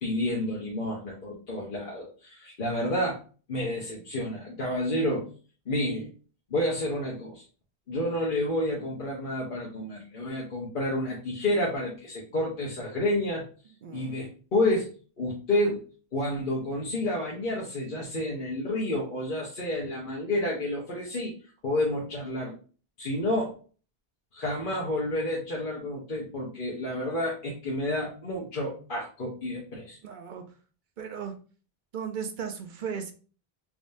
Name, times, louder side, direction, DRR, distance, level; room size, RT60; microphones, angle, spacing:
voice 1, 0.0-3.2 3.5-5.3 5.7-6.1 6.5-7.4 7.9-13.5 13.9-14.9 15.2-15.8 16.1-21.3 21.6-22.5 23.0-23.6 24.3-30.0, left 1 dB, 55° left, -4 dB, 1.1 m, -30 dB
voice 2, 13.8-14.2 30.0-30.4 31.0-31.4 31.9-33.1, right 7 dB, 55° right, 6 dB, 0.6 m, -36 dB
3.6 x 3.0 x 2.6 m, 0.37 s
omnidirectional pair, 1.1 m